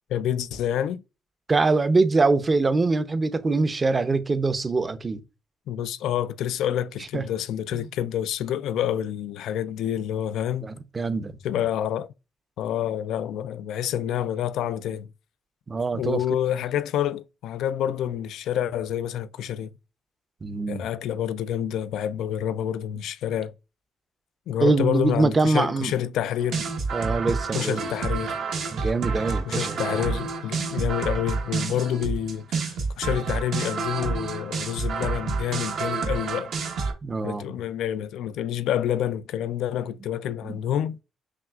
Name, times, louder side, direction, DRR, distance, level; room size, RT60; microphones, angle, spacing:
voice 1, 0.1-1.0 5.7-10.7 11.4-12.1 12.6-15.1 16.0-19.7 20.7-23.5 24.5-26.7 27.5-28.4 29.5-36.5 37.2-41.0, left 10 dB, 80° left, 0.3 m, -28 dB
voice 2, 1.5-5.2 7.1-7.2 7.7-7.8 10.6-11.4 15.7-16.2 20.4-20.9 24.6-25.9 26.6-27.9 28.7-30.1 37.0-37.5 40.4-40.6, right 3 dB, 30° right, 0.6 m, -24 dB
sound 1, 26.4-36.9, right 4 dB, 75° right, 0.9 m, -29 dB
5.9 x 2.4 x 2.3 m
cardioid pair, 90°, 0 cm